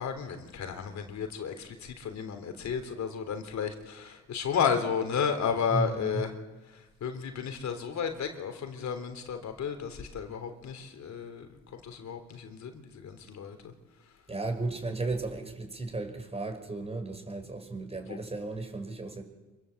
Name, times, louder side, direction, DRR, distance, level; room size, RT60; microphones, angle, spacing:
voice 1, 0.0-6.3 7.0-11.5 11.8-12.7 13.0-13.6 18.1-18.2, left 7 dB, 65° left, 7 dB, 3.6 m, -32 dB
voice 2, 5.7-6.2 14.3-19.2, right 3 dB, 20° right, 5 dB, 5.6 m, -34 dB
26.5 x 24.5 x 8.0 m, 1.1 s
cardioid pair, 90°, 30 cm